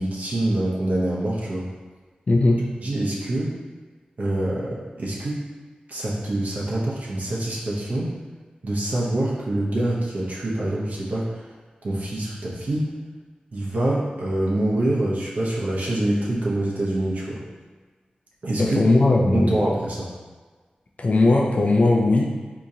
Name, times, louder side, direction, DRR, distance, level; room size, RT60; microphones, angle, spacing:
voice 1, 0.0-1.7 2.8-3.5 4.2-5.4 5.9-8.1 8.6-11.4 11.8-12.9 13.5-17.4 18.4-18.8 19.3-20.1, right 1 dB, 60° right, -6 dB, 0.8 m, -25 dB
voice 2, 2.3-2.6 18.6-19.6 21.0-22.3, left 2 dB, 50° left, 0 dB, 0.5 m, -18 dB
3.7 x 2.9 x 2.7 m, 1.4 s
cardioid pair, 50°, 3 cm